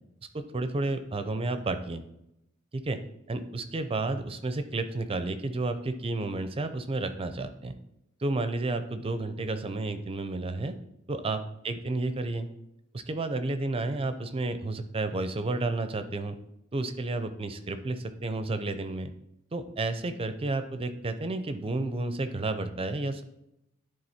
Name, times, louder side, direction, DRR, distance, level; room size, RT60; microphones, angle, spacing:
voice 1, 0.3-2.0 2.7-3.0 3.3-7.7 8.2-10.7 11.1-12.5 12.9-16.4 16.7-19.1 19.5-23.2, right 2 dB, 25° right, 9 dB, 0.5 m, -31 dB
10.5 x 3.8 x 4.2 m, 0.83 s
head